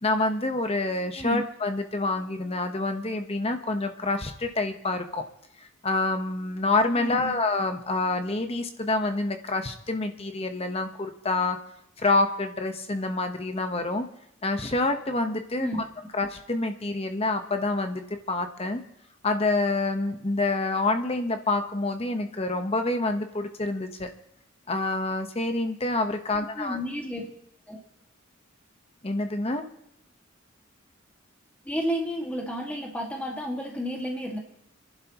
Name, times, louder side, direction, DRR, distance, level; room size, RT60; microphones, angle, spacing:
voice 1, 0.0-5.2 5.8-11.6 12.0-14.1 14.4-15.7 16.1-18.0 18.3-18.8 19.2-24.1 24.7-26.8 29.0-29.6, left 2 dB, 30° left, 6 dB, 1.1 m, -27 dB
voice 2, 6.9-7.4 15.6-15.8 26.6-27.3 27.7-27.8 31.6-34.4, equal, 5° left, -1 dB, 2.0 m, -31 dB
30.0 x 11.5 x 3.0 m, 0.76 s
head